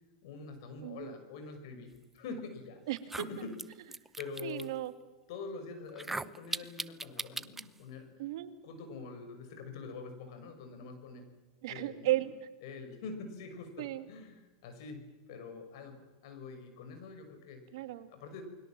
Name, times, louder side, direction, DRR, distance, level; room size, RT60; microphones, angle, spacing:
voice 1, 0.2-2.8 3.2-3.6 4.2-4.7 5.3-8.1 8.6-11.3 11.7-12.2 12.6-15.0 15.3-17.6 18.1-18.4, left 4 dB, 65° left, 7 dB, 6.3 m, -45 dB
voice 2, 0.8-1.1 2.9-3.5 4.4-4.9 8.2-8.6 11.6-12.3 13.8-14.1 17.7-18.1, right 15 dB, 70° right, 9 dB, 2.3 m, -35 dB
sound 1, 2.4-2.5 3.0-4.7 5.9-7.7, right 2 dB, 10° right, 0.8 m, -39 dB
29.0 x 21.5 x 7.7 m, 1.2 s
hypercardioid pair, 120°, 3 cm